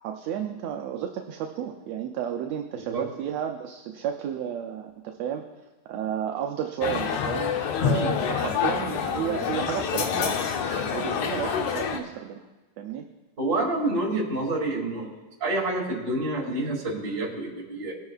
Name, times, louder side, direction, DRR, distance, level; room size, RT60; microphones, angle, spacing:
voice 1, 0.0-5.4 5.9-10.4 10.9-12.4 12.8-13.1, right 9 dB, 75° right, 3 dB, 1.7 m, -32 dB
sound 1, 6.8-12.0, left 7 dB, 80° left, 2.1 m, -27 dB
voice 2, 13.4-15.1 15.4-17.9, right 2 dB, 40° right, -3 dB, 3.1 m, -28 dB
19.5 x 9.9 x 2.4 m, 1.2 s
omnidirectional pair, 3.3 m